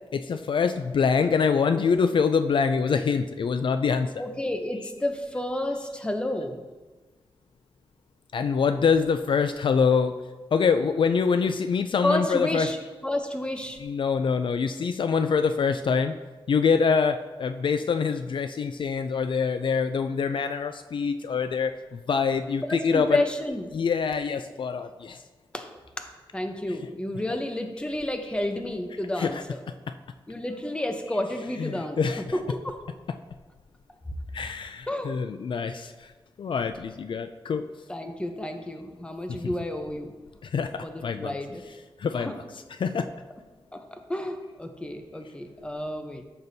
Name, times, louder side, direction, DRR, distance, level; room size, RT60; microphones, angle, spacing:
voice 1, 0.1-4.2 8.3-10.1 10.5-12.7 13.8-16.2 16.5-23.2 23.7-25.2 26.7-26.9 29.1-29.4 31.2-32.6 33.1-33.2 34.3-36.1 36.4-37.6 39.3-39.5 40.4-41.4 41.7-43.1, left 5 dB, 60° left, 9 dB, 0.3 m, -25 dB
voice 2, 4.2-6.6 12.0-12.8 13.0-13.8 22.7-23.7 25.5-25.7 26.0-29.6 30.3-32.8 34.9-35.1 37.9-40.1 40.8-41.6 42.2-42.3 43.7-46.2, left 1 dB, 10° left, 5 dB, 0.7 m, -31 dB
14.0 x 6.0 x 2.7 m, 1.3 s
wide cardioid pair, 160°, 10 cm